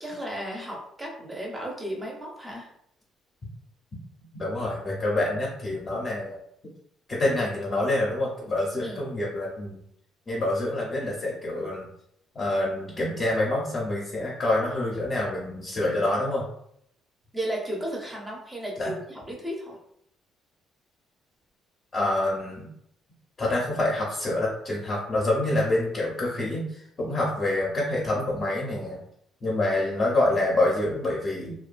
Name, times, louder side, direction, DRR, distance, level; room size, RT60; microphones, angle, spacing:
voice 1, 0.0-2.7 8.8-9.0 17.3-19.8, right 1 dB, 15° right, -2 dB, 0.6 m, -34 dB
voice 2, 4.3-6.4 7.1-9.8 10.3-11.9 12.3-16.4 18.8-18.9 21.9-22.7 23.4-29.0 29.4-31.5, left 1 dB, 25° left, -4 dB, 0.6 m, -26 dB
2.6 x 2.2 x 2.4 m, 0.71 s
cardioid pair, 120°, 0 cm